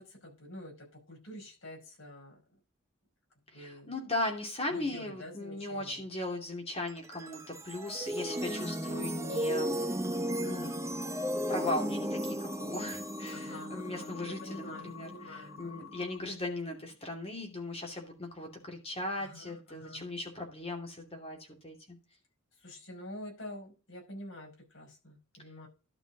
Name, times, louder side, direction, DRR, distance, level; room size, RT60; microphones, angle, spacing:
voice 1, 0.0-2.4 3.5-3.9 4.7-6.0 10.4-10.8 13.3-15.7 19.2-20.0 22.6-25.7, left 1 dB, 65° left, 0 dB, 5.4 m, -47 dB
voice 2, 3.5-9.8 10.3-10.7 11.5-21.4 21.6-22.0, left 1 dB, 30° left, 1 dB, 2.7 m, -38 dB
sound 1, 6.9-16.1, equal, 15° right, 0.8 m, -36 dB
sound 2, 8.3-16.2, left 8 dB, 50° left, 1.2 m, -50 dB
12.0 x 5.1 x 4.7 m, 0.32 s
head